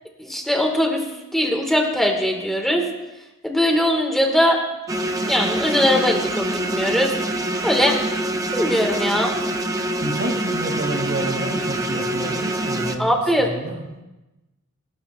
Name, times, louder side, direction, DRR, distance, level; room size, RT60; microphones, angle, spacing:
voice 1, 0.2-1.0 1.3-2.8 3.4-4.6 5.2-7.1 7.6-8.0 8.5-9.3 13.0-13.5, equal, ahead, 1 dB, 1.8 m, -20 dB
sound 1, 4.9-13.0, right 1 dB, 15° right, 0.6 m, -25 dB
voice 2, 10.0-13.1 13.4-13.8, right 1 dB, 60° right, 1 dB, 2.7 m, -29 dB
24.5 x 13.0 x 2.5 m, 1.0 s
head